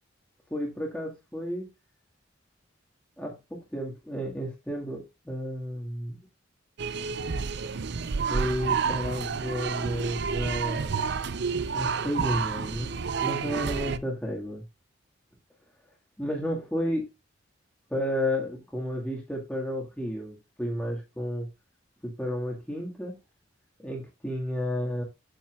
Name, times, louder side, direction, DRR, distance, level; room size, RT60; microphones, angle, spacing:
voice 1, 0.5-1.7 3.2-6.2 8.3-11.0 11.7-14.6 16.2-17.1 17.9-21.5 22.0-23.1 23.8-25.0, equal, 5° left, 1.8 m, -32 dB
sound 1, 6.8-14.0, right 5 dB, 60° right, 0.6 m, -30 dB
8.3 x 7.8 x 2.4 m
head